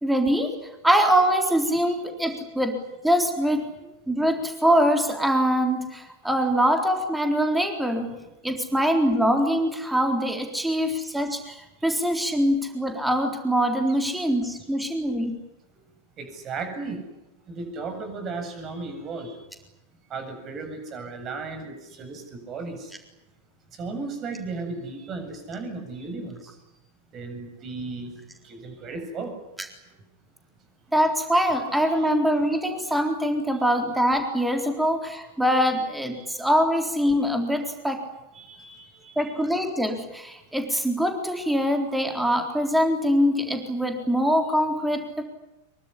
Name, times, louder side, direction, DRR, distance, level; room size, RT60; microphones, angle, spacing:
voice 1, 0.0-0.5 0.8-3.7 4.1-8.1 8.4-11.6 11.8-15.4 30.9-38.0 39.2-45.2, equal, 5° right, 4 dB, 3.9 m, -23 dB
voice 2, 16.2-17.0 17.5-19.4 20.1-22.9 23.7-26.6 27.1-28.2 28.4-29.3 31.9-32.0 36.1-36.3 38.3-39.4, right 3 dB, 30° right, 6 dB, 7.8 m, -35 dB
24.5 x 23.5 x 9.9 m, 0.97 s
figure-of-eight pair, 90°, 0 cm